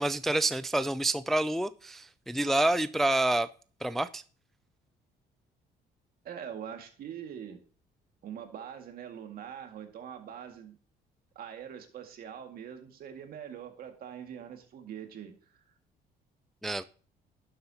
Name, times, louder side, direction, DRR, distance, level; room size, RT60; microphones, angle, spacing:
voice 1, 0.0-3.5 3.8-4.2 16.6-16.8, right 1 dB, ahead, 0.3 m, -28 dB
voice 2, 6.2-7.6 8.2-10.8 11.4-15.6, right 8 dB, 60° right, 2.0 m, -43 dB
11.0 x 7.7 x 2.8 m
cardioid pair, 110°, 17 cm